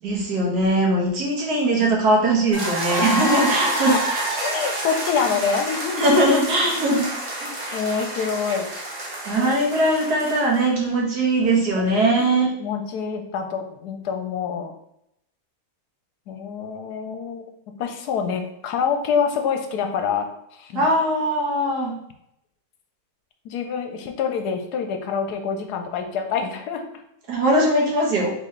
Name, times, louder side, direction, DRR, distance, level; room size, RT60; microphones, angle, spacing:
voice 1, 0.0-4.0 6.0-7.1 7.4-7.5 9.3-12.5 20.8-22.0 27.3-28.3, right 1 dB, 70° right, -2 dB, 1.7 m, -20 dB
sound 1, 2.5-10.6, right 1 dB, 30° right, 1.0 m, -28 dB
voice 2, 4.4-6.3 7.7-8.7 9.4-9.5 11.8-11.9 12.2-14.7 16.3-17.5 17.8-20.9 23.4-27.0, left 6 dB, 75° left, 5 dB, 1.1 m, -26 dB
4.1 x 3.8 x 3.1 m, 0.78 s
omnidirectional pair, 1.8 m